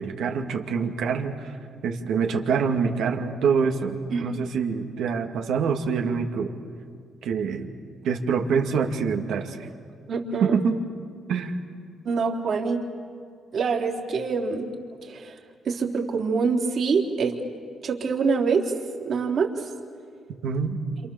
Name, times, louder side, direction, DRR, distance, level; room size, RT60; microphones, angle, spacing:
voice 1, 0.0-1.6 1.8-6.6 7.2-7.7 8.0-9.7 10.4-10.8 11.3-11.5 20.4-20.8, right 6 dB, 80° right, 3 dB, 2.3 m, -25 dB
voice 2, 10.1-10.6 12.0-12.8 13.5-14.7 15.0-15.3 15.6-17.4 17.8-18.7 19.1-19.5, right 5 dB, 55° right, 0 dB, 3.7 m, -25 dB
28.0 x 28.0 x 7.2 m, 2.3 s
cardioid pair, 90°, 0 cm